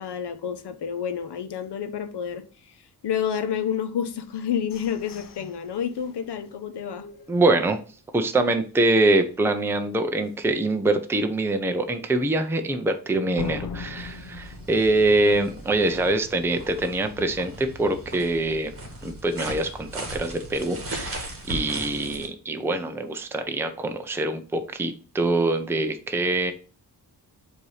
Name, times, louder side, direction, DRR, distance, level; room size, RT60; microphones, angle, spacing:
voice 1, 0.0-2.7 3.0-7.1, left 8 dB, 80° left, 0.9 m, -29 dB
sound 1, 4.1-8.0 8.4-8.5 8.9-9.3 9.7-9.8 10.3-10.4 13.4-16.0, left 5 dB, 55° left, 0.6 m, -41 dB
voice 2, 7.3-7.8 8.1-18.7 19.0-26.5, right 2 dB, 5° right, 0.5 m, -24 dB
sound 2, 13.9-22.3, right 1 dB, 35° right, 1.8 m, -38 dB
7.8 x 2.8 x 4.8 m
wide cardioid pair, 150°, 40 cm